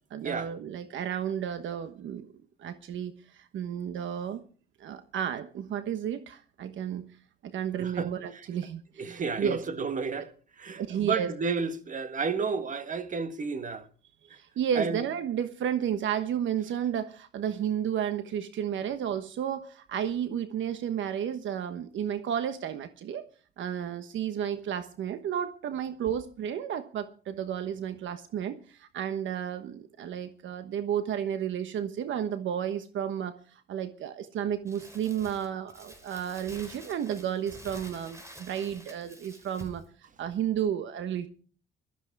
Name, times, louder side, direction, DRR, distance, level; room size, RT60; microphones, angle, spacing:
voice 1, 0.1-2.3 2.6-4.4 4.8-7.1 7.4-9.1 9.4-9.6 10.8-11.3 14.3-23.3 23.6-33.3 33.7-39.8 40.2-41.3, right 9 dB, 75° right, 1.2 m, -32 dB
voice 2, 7.8-8.1 9.0-10.3 10.6-13.8 14.7-15.0, right 5 dB, 40° right, 1.7 m, -31 dB
Crumpling crinkling, 34.7-39.9, right 1 dB, 15° right, 4.4 m, -48 dB
16.0 x 13.5 x 4.7 m
cardioid pair, 90°, 20 cm